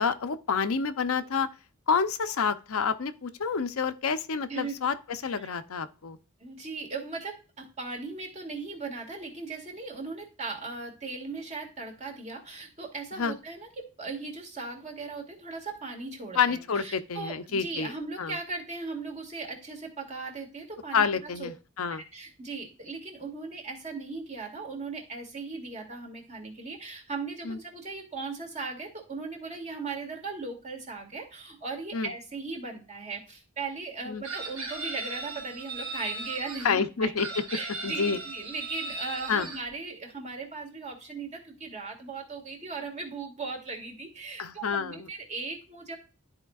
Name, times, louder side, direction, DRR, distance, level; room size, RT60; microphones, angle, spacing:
voice 1, 0.0-1.5 1.9-6.2 13.2-13.4 16.3-17.9 18.2-18.3 20.9-22.0 27.4-27.6 31.9-32.1 34.1-34.2 36.6-37.4 37.8-38.2 39.3-39.5 44.4-45.1, left 5 dB, 75° left, 0.6 m, -28 dB
voice 2, 5.2-5.5 6.4-21.5 22.1-37.1 37.5-46.0, right 3 dB, 30° right, 1.9 m, -38 dB
Chicken rooster, 34.2-36.7 37.2-39.6, right 3 dB, 80° right, 3.6 m, -37 dB
12.5 x 4.4 x 2.3 m
head